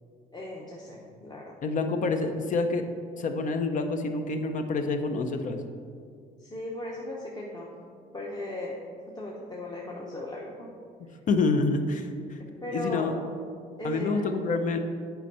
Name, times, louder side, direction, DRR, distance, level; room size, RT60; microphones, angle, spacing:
voice 1, 0.3-1.5 6.4-7.7 8.1-10.7 12.6-13.2 13.8-14.4, left 1 dB, 25° left, -3 dB, 1.0 m, -37 dB
voice 2, 1.6-2.8 3.2-5.6 11.3-12.4 12.7-13.1 13.8-14.8, left 3 dB, 50° left, 6 dB, 0.7 m, -27 dB
8.1 x 4.5 x 5.5 m, 2.2 s
cardioid pair, 110°, 17 cm